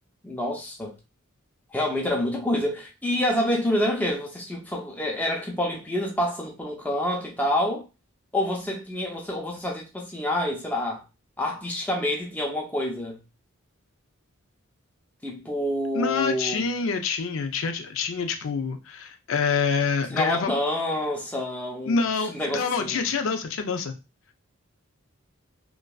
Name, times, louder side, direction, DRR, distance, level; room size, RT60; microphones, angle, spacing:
voice 1, 0.2-0.9 1.7-7.9 8.3-11.0 11.4-13.2 15.2-16.7 20.1-22.0 22.3-23.0, left 1 dB, 10° left, 0.6 m, -27 dB
voice 2, 15.9-20.5 21.9-24.0, left 5 dB, 65° left, 0.5 m, -26 dB
2.9 x 2.5 x 2.3 m
head